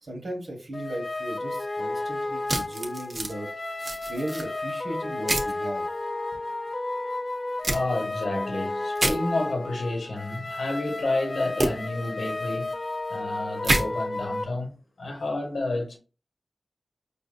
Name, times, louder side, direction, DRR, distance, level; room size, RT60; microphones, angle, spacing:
voice 1, 0.0-3.5 4.1-5.8, right 1 dB, 80° right, 1.1 m, -36 dB
sound 1, 0.7-14.4, left 2 dB, 40° left, 0.3 m, -32 dB
sound 2, 2.5-3.3 3.8-4.4 5.3-5.5 7.6-7.8 9.0-9.2 11.6-11.7 13.6-13.8, right 2 dB, 50° right, 0.7 m, -26 dB
voice 2, 7.7-12.8 13.1-16.0, left 2 dB, 85° left, 1.0 m, -30 dB
4.7 x 2.6 x 2.4 m
wide cardioid pair, 60°, 0 cm